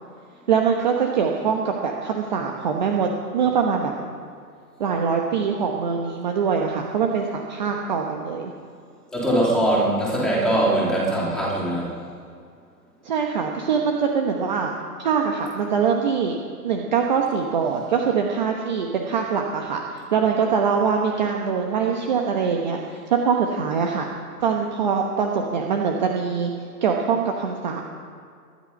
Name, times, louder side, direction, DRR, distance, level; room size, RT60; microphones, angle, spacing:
voice 1, 0.5-3.9 4.8-8.5 13.0-14.7 15.0-16.4 16.6-24.1 24.4-26.5 26.8-27.8, right 6 dB, 30° right, 2 dB, 1.1 m, -23 dB
voice 2, 9.1-12.0, right 1 dB, ahead, -6 dB, 2.9 m, -21 dB
21.0 x 11.5 x 5.3 m, 2.2 s
hypercardioid pair, 165°, 48 cm